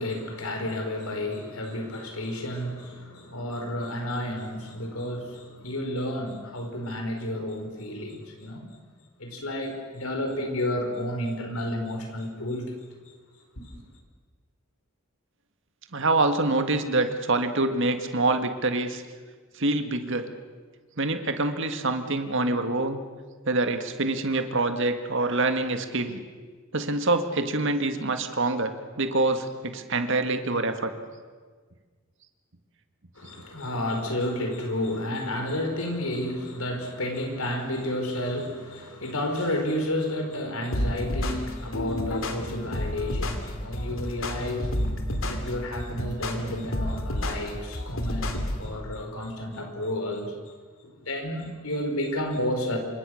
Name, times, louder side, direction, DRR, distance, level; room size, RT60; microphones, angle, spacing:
voice 1, 0.0-8.7 9.2-12.8 13.6-13.8 33.1-50.3 50.8-52.8, left 1 dB, 85° left, 4.9 m, -31 dB
voice 2, 15.9-19.0 19.6-20.3 21.0-23.0 23.5-26.2 26.7-30.9, right 2 dB, 60° right, 1.9 m, -25 dB
sound 1, 40.7-48.7, left 1 dB, 65° left, 2.8 m, -30 dB
27.5 x 25.0 x 6.5 m
head